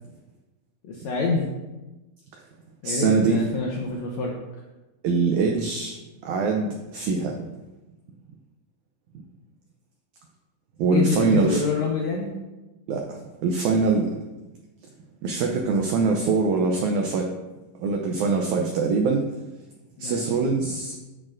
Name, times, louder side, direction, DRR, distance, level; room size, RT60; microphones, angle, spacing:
voice 1, 0.9-1.5 2.8-4.3 10.9-12.3 20.0-20.2, left 4 dB, 75° left, -1 dB, 1.7 m, -26 dB
voice 2, 2.8-3.4 5.0-6.0 6.2-7.4 10.8-11.6 12.9-14.1 15.2-17.3 17.8-19.2 20.0-21.0, right 4 dB, 85° right, 2 dB, 1.7 m, -23 dB
10.5 x 6.3 x 2.5 m, 1.1 s
omnidirectional pair, 4.1 m